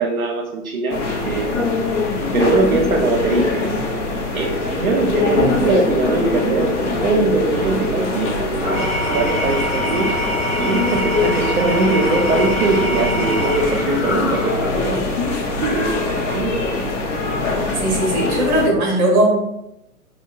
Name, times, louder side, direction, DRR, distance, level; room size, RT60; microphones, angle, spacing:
voice 1, 0.0-1.6 2.3-3.7 4.3-6.7 7.0-10.2 10.6-15.1 15.6-16.7, right 3 dB, 65° right, 1 dB, 0.6 m, -21 dB
sound 1, 0.9-18.7, left 3 dB, 50° left, 0.8 m, -23 dB
Engine / Tools, 8.5-14.9, equal, 25° left, 1.0 m, -24 dB
voice 2, 17.7-19.3, right 1 dB, 30° right, 0 dB, 0.9 m, -18 dB
4.5 x 2.2 x 2.3 m, 0.86 s
figure-of-eight pair, 125°, 45 cm